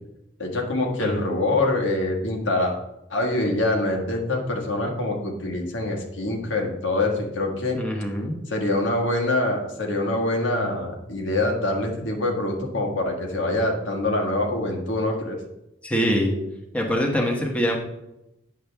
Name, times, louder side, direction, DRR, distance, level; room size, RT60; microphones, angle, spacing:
voice 1, 0.4-2.7 3.1-7.8 8.5-15.4, left 2 dB, 80° left, 1 dB, 1.7 m, -25 dB
voice 2, 7.7-8.4 15.8-16.3 16.7-17.8, equal, 5° left, 0 dB, 1.1 m, -24 dB
9.3 x 7.3 x 3.5 m, 0.89 s
head